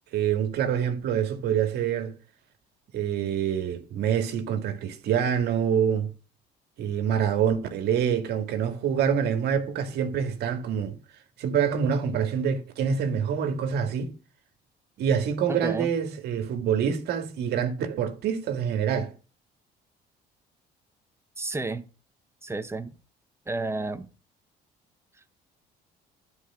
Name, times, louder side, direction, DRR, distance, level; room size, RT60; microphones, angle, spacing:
voice 1, 0.1-2.1 2.9-6.1 6.8-10.9 11.4-14.1 15.0-19.1, right 8 dB, 75° right, 2.1 m, -26 dB
voice 2, 15.5-15.9 21.4-21.8 22.4-22.9 23.5-24.1, right 3 dB, 15° right, 1.1 m, -31 dB
11.5 x 4.9 x 7.5 m
cardioid pair, 110°, 17 cm